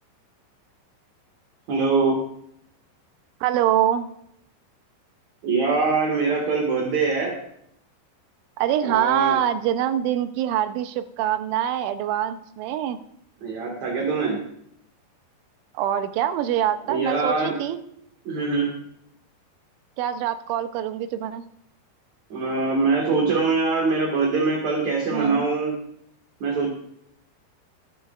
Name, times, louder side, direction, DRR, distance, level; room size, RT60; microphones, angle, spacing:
voice 1, 1.7-2.2 5.4-7.3 8.9-9.4 13.4-14.4 16.9-17.6 18.3-18.7 22.3-25.7 26.4-26.7, right 4 dB, 50° right, -1 dB, 2.5 m, -23 dB
voice 2, 3.4-4.1 8.6-13.0 15.7-17.8 20.0-21.4 25.1-25.5, right 10 dB, 85° right, 10 dB, 3.2 m, -24 dB
21.0 x 10.0 x 2.5 m, 0.72 s
omnidirectional pair, 5.5 m